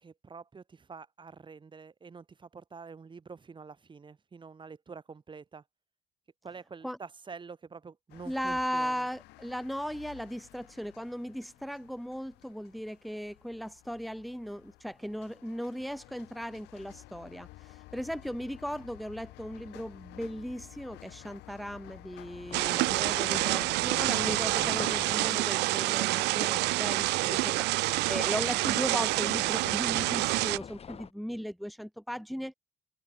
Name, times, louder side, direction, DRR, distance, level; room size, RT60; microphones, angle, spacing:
voice 1, 0.0-5.6 6.4-8.9, right 5 dB, 30° right, 5.4 m, -47 dB
sound 1, 8.1-23.8, left 20 dB, 90° left, 1.5 m, -53 dB
voice 2, 8.3-32.5, equal, ahead, 1.8 m, -37 dB
sound 2, 22.3-31.1, left 7 dB, 35° left, 2.3 m, -46 dB
sound 3, 22.5-30.6, right 21 dB, 85° right, 0.6 m, -28 dB
open air
cardioid pair, 110°, 17 cm